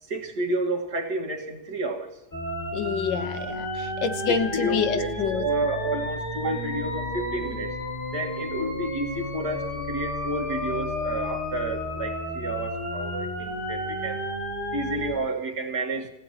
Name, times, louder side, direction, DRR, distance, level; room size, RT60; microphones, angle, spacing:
voice 1, 0.0-2.1 4.3-7.7 8.1-14.2 14.7-16.1, right 2 dB, 65° right, 1 dB, 2.3 m, -30 dB
sound 1, 2.3-15.1, left 1 dB, 25° left, 2.6 m, -32 dB
voice 2, 2.7-5.5, left 6 dB, 85° left, 9 dB, 1.7 m, -27 dB
28.0 x 16.0 x 2.9 m, 1.0 s
omnidirectional pair, 1.9 m